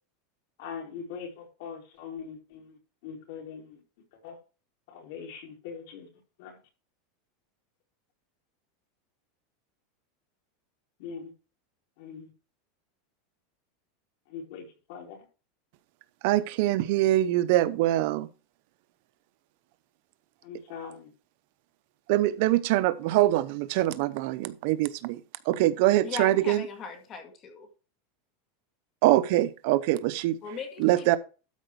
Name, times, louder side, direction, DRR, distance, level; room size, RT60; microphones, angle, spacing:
voice 1, 0.6-3.8 4.1-4.4 4.9-6.1 6.4-6.6 11.0-11.3 12.0-12.3 14.3-15.2 20.4-21.1, left 6 dB, 65° left, 4.3 m, -42 dB
voice 2, 16.2-18.3 22.1-25.2 25.5-26.6 29.0-30.4 30.8-31.2, right 15 dB, 60° right, 0.7 m, -24 dB
voice 3, 26.0-27.7 30.4-31.2, left 5 dB, 30° left, 2.0 m, -39 dB
12.5 x 5.0 x 4.7 m
supercardioid pair, 145°, 0 cm